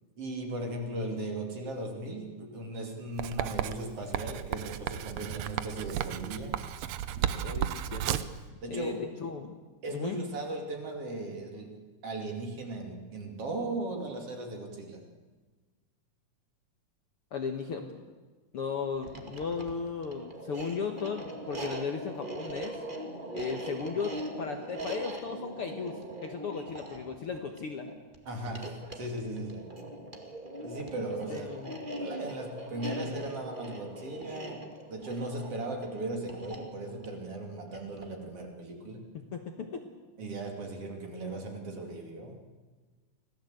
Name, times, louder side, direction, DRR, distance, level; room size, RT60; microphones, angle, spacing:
voice 1, 0.2-6.6 7.2-7.6 8.6-9.1 9.8-11.8 12.0-15.1 28.3-29.7 30.6-31.5 32.0-39.1 40.2-42.4, right 2 dB, 45° right, 2 dB, 3.5 m, -37 dB
Writing, 3.2-8.4, right 11 dB, 70° right, 1.7 m, -33 dB
voice 2, 7.4-8.2 8.7-9.6 9.9-10.2 17.3-18.0 18.5-22.8 23.3-27.9 31.3-31.7 39.1-39.9, left 5 dB, 55° left, 5 dB, 1.9 m, -36 dB
sound 1, 19.0-38.2, right 1 dB, 20° right, 1.8 m, -41 dB
25.5 x 17.0 x 8.0 m, 1.3 s
omnidirectional pair, 3.8 m